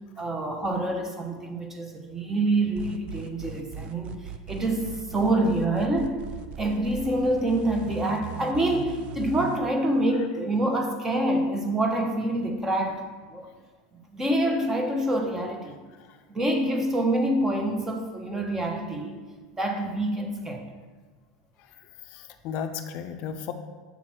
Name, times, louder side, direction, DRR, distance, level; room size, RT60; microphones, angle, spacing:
voice 1, 0.2-6.2 6.6-13.5 14.1-15.8 16.3-19.2 19.6-20.7, right 1 dB, 15° right, 3 dB, 0.9 m, -26 dB
sound 1, 2.7-9.6, right 7 dB, 50° right, 0.4 m, -38 dB
voice 2, 22.1-23.5, left 7 dB, 55° left, 7 dB, 0.4 m, -35 dB
7.0 x 3.0 x 5.9 m, 1.4 s
supercardioid pair, 110°, 2 cm